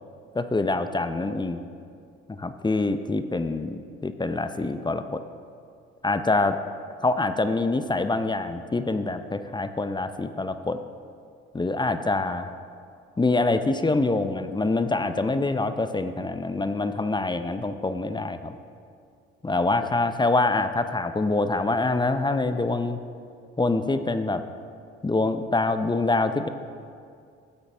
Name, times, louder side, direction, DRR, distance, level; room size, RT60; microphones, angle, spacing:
voice 1, 0.3-1.6 2.3-5.2 6.0-6.6 7.0-10.8 11.5-12.5 13.2-18.6 19.4-23.0 23.6-24.4 25.0-26.5, left 2 dB, 15° left, 10 dB, 0.6 m, -25 dB
15.0 x 8.2 x 3.4 m, 2.3 s
hypercardioid pair, 55°, 32 cm